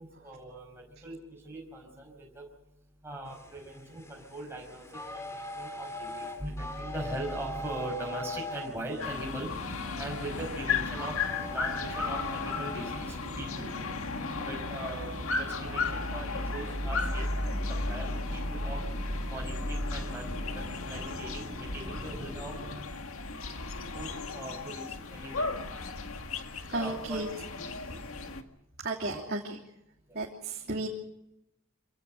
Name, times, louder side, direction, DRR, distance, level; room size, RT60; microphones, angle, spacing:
voice 1, 0.0-2.5 3.0-13.7 14.4-18.8 19.3-22.5 23.9-25.5 26.7-27.2 29.1-29.2 30.1-30.2, right 1 dB, 10° right, -1 dB, 5.4 m, -41 dB
sound 1, 3.2-13.3, left 1 dB, 15° left, 2.9 m, -42 dB
sound 2, 9.0-28.4, left 3 dB, 80° left, 2.0 m, -35 dB
sound 3, 9.4-22.9, equal, 30° right, 2.1 m, -45 dB
voice 2, 26.7-27.3 27.9-28.0 28.8-29.6 30.1-30.9, right 2 dB, 50° right, -1 dB, 3.0 m, -34 dB
26.5 x 17.5 x 6.6 m, 0.86 s
head